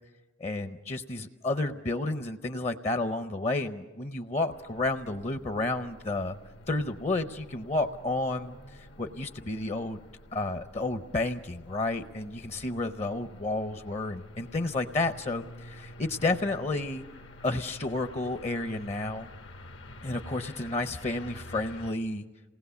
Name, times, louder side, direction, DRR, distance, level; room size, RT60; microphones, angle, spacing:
voice 1, 0.4-6.4 6.7-8.6 9.0-10.0 10.3-17.0 17.4-19.3 20.0-22.2, left 2 dB, 35° left, 9 dB, 0.6 m, -31 dB
sound 1, 4.5-21.9, left 1 dB, 75° left, 1.2 m, -48 dB
28.0 x 19.0 x 7.0 m, 1.2 s
head